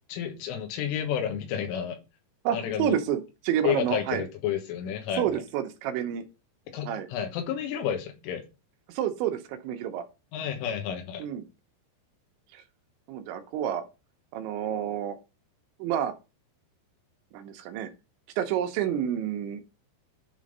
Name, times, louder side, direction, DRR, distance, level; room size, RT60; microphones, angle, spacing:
voice 1, 0.1-2.0 2.5-3.0 3.6-5.3 6.7-8.4 10.3-11.3, left 9 dB, 85° left, 3.9 m, -31 dB
voice 2, 2.4-4.2 5.2-6.2 6.9-7.1 8.9-10.1 11.2-11.4 12.5-12.6 13.1-13.8 14.3-15.2 15.8-16.1 17.3-17.9 18.4-19.6, right 10 dB, 75° right, 3.1 m, -29 dB
10.0 x 3.9 x 5.3 m
omnidirectional pair, 5.6 m